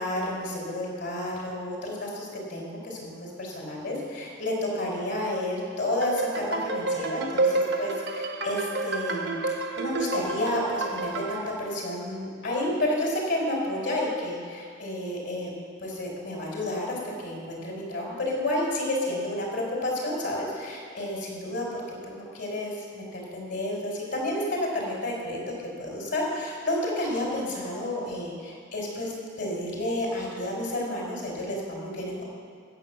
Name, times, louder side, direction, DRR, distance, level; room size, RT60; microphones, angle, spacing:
voice 1, 0.0-9.3 9.8-15.5 15.8-21.8 22.1-32.2, left 1 dB, 65° left, -2 dB, 4.5 m, -31 dB
sound 1, 6.0-11.5, right 3 dB, 60° right, 1.1 m, -29 dB
16.0 x 8.4 x 7.0 m, 2.2 s
head